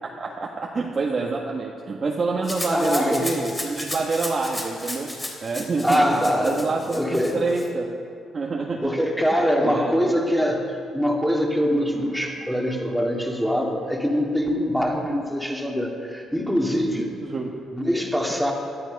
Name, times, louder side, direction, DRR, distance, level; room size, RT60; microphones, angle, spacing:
voice 1, 0.0-5.1 5.4-6.1 6.4-8.0 8.3-8.9 9.6-10.1 11.7-11.8 17.2-17.6, right 3 dB, 40° right, -1 dB, 1.6 m, -27 dB
Rattle (instrument), 2.4-7.7, left 1 dB, 20° left, 3.5 m, -34 dB
voice 2, 2.7-3.3 5.8-6.6 6.9-7.4 8.8-17.1 17.7-18.5, equal, ahead, 0 dB, 2.7 m, -23 dB
18.0 x 12.5 x 5.4 m, 2.4 s
cardioid pair, 90°, 0 cm